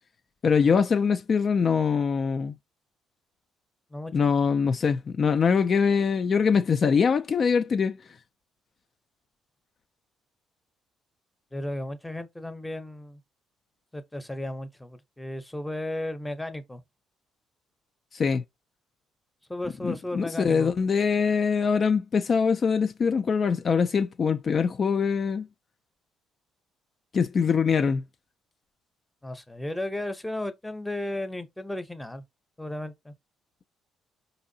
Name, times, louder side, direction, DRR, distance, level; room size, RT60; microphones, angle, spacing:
voice 1, 0.4-2.6 4.1-8.0 18.1-18.4 19.8-25.5 27.1-28.0, left 6 dB, 45° left, 0.3 m, -23 dB
voice 2, 3.9-4.3 11.5-13.2 13.9-16.8 19.5-20.7 29.2-32.2 32.6-33.1, left 1 dB, 5° left, 0.7 m, -34 dB
4.7 x 2.6 x 2.7 m
supercardioid pair, 80°, 0 cm